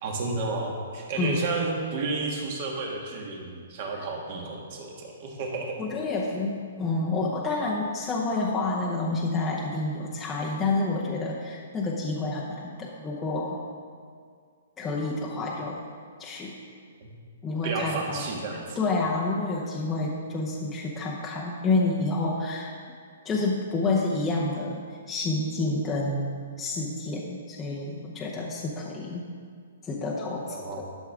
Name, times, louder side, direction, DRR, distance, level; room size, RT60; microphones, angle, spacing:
voice 1, 0.0-5.8 17.0-17.1 17.6-18.8 30.5-30.8, right 3 dB, 40° right, 0 dB, 1.6 m, -32 dB
voice 2, 5.8-13.6 14.8-15.8 16.2-16.6 17.4-18.3 18.8-22.7 23.2-29.3 29.8-30.8, left 2 dB, 10° left, -4 dB, 0.7 m, -29 dB
11.5 x 6.4 x 3.6 m, 2.1 s
hypercardioid pair, 160°, 0 cm